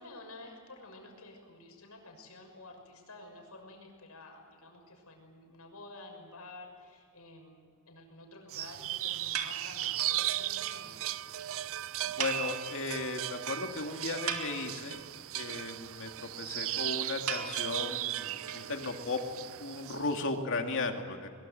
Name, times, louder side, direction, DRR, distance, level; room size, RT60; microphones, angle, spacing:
voice 1, 0.0-11.0, left 2 dB, 80° left, 3 dB, 6.4 m, -51 dB
sound 1, 8.5-20.2, right 13 dB, 65° right, 0.5 m, -37 dB
sound 2, 9.3-10.1 10.4-10.5 10.7-10.8 11.1-11.2 11.4-11.5 12.2-13.2 13.5-13.6 14.0-15.0 17.3-19.2, right 7 dB, 85° right, 2.5 m, -38 dB
voice 2, 12.0-15.0 15.3-19.2 19.6-21.3, left 3 dB, 60° left, 4 dB, 2.6 m, -36 dB
23.0 x 22.5 x 7.9 m, 2.1 s
head